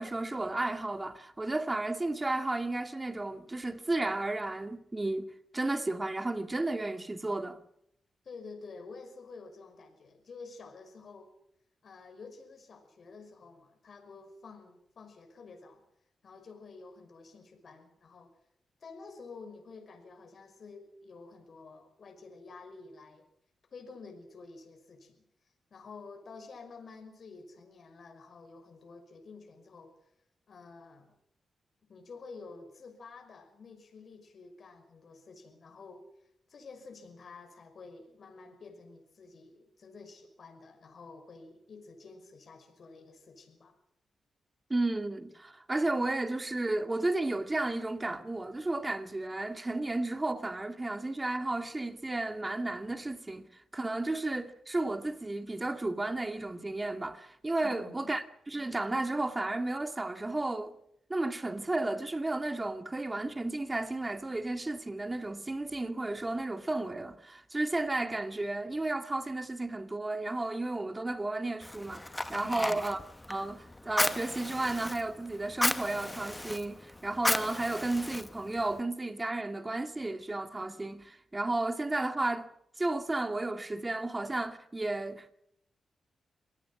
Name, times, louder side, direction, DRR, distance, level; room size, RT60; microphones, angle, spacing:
voice 1, 0.0-7.6 44.7-53.5 53.7-60.7 61.1-73.0 73.3-82.5 82.8-85.3, right 2 dB, 20° right, 2.2 m, -33 dB
voice 2, 8.2-11.3 11.8-15.8 16.2-18.3 18.8-23.2 23.7-25.2 25.7-29.9 30.5-31.1 31.9-36.0 36.5-43.7 57.6-58.2 72.4-72.9, left 4 dB, 60° left, 5.7 m, -50 dB
Fire, 71.6-78.8, left 1 dB, 15° left, 1.5 m, -35 dB
25.5 x 18.0 x 7.4 m
cardioid pair, 75°, 0 cm